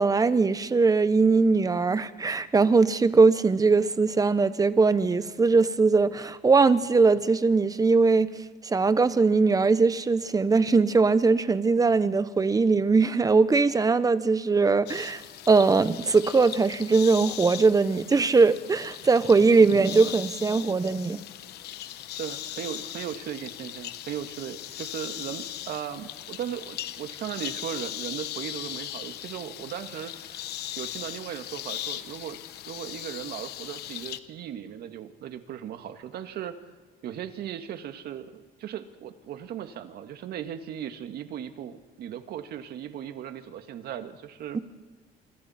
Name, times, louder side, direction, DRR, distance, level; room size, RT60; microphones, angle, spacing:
voice 1, 0.0-8.3 8.6-15.2 15.5-21.2 44.5-44.6, right 4 dB, 20° right, 1.1 m, -21 dB
sound 1, 14.9-34.2, left 12 dB, 75° left, 1.1 m, -39 dB
voice 2, 22.1-30.4 30.8-32.4 32.7-36.6 37.0-44.6, right 10 dB, 70° right, 1.9 m, -37 dB
27.0 x 24.5 x 4.4 m
cardioid pair, 110°, 17 cm